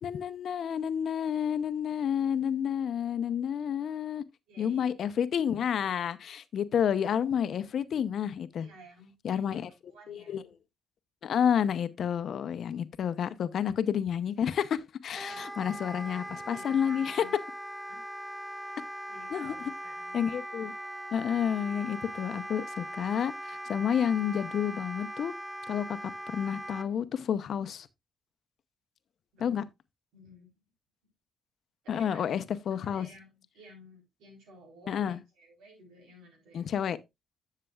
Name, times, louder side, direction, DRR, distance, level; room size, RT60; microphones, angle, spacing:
voice 1, 0.0-4.2 4.6-8.7 9.2-10.4 11.2-17.2 19.3-19.5 20.1-20.7 21.1-25.3 25.7-27.9 29.4-29.6 31.9-33.1 34.9-35.2 36.5-37.0, left 8 dB, 60° left, 0.7 m, -30 dB
voice 2, 4.5-5.1 8.5-9.6 9.9-10.5 15.3-17.3 17.9-18.0 19.1-20.2 29.3-29.7 30.1-30.5 31.9-32.4 32.7-36.7, right 1 dB, 90° right, 3.8 m, -54 dB
Wind instrument woodwind instrument, 15.2-26.9, right 1 dB, 5° right, 0.4 m, -40 dB
11.0 x 6.7 x 2.3 m
cardioid pair, 90°, 0 cm